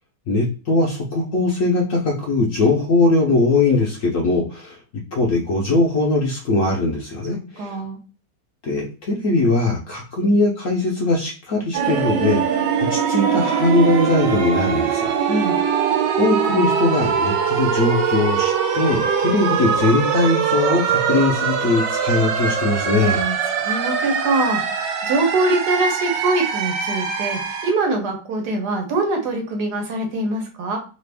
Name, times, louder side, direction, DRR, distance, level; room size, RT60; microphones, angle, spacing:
voice 1, 0.3-4.8 5.1-7.7 8.6-12.4 12.8-15.1 16.2-23.2, left 2 dB, 60° left, -1 dB, 0.9 m, -20 dB
voice 2, 7.3-8.0 15.3-15.6 23.1-30.8, right 2 dB, 70° right, 2 dB, 1.4 m, -23 dB
sound 1, 11.7-27.7, right 7 dB, 90° right, 1.3 m, -22 dB
3.2 x 2.5 x 3.3 m, 0.35 s
omnidirectional pair, 1.9 m